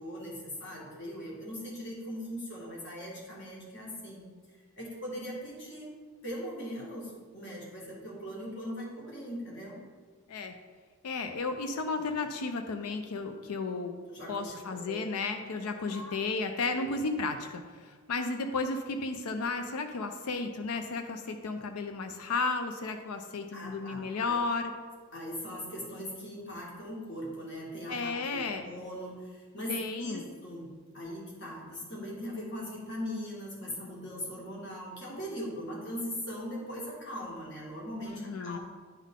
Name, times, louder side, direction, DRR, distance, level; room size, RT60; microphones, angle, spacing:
voice 1, 0.0-4.2 4.5-5.9 6.2-9.8 14.1-14.6 14.9-15.0 15.6-16.2 16.8-16.9 23.5-24.4 25.1-30.7 30.9-38.6, equal, 50° left, -4 dB, 1.8 m, -40 dB
voice 2, 11.0-14.0 14.3-24.7 27.9-28.6 29.7-30.3 38.1-38.6, left 3 dB, 85° left, 6 dB, 0.5 m, -33 dB
10.0 x 3.7 x 3.7 m, 1.5 s
head